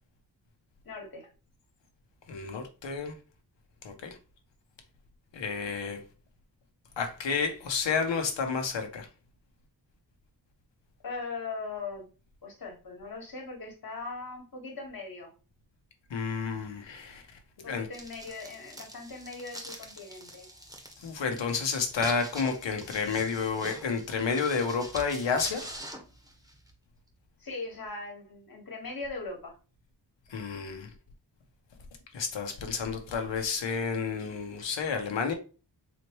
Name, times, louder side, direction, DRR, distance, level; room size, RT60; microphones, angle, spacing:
voice 1, 0.8-1.3 11.0-12.1 12.4-15.3 17.6-20.5 27.4-29.6, left 3 dB, 50° left, 1.6 m, -40 dB
voice 2, 2.3-3.1 3.8-4.2 5.3-6.0 7.0-9.1 16.1-17.2 17.6-17.9 21.0-25.7 30.3-30.9 32.1-35.3, left 5 dB, 80° left, 1.0 m, -30 dB
sound 1, 17.9-26.7, right 1 dB, 10° right, 1.1 m, -44 dB
4.1 x 3.1 x 3.0 m
cardioid pair, 75°, 43 cm